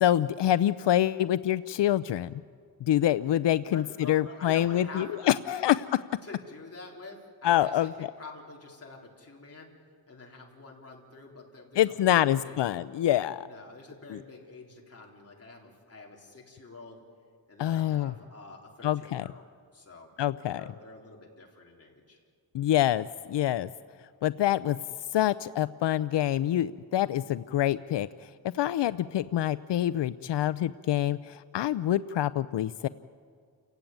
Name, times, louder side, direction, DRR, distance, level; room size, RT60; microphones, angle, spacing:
voice 1, 0.0-2.3 2.8-5.8 7.4-8.1 11.8-13.5 14.1-14.2 17.6-18.1 18.8-19.2 20.2-20.6 22.5-23.7 24.2-24.8 25.1-32.9, left 12 dB, 85° left, 15 dB, 0.5 m, -26 dB
voice 2, 3.6-5.7 6.2-9.7 10.1-12.6 13.4-17.0 17.5-19.5 19.7-20.1 20.5-22.2, left 3 dB, 35° left, -1 dB, 3.7 m, -47 dB
29.5 x 16.0 x 9.2 m, 2.1 s
wide cardioid pair, 165°, 41 cm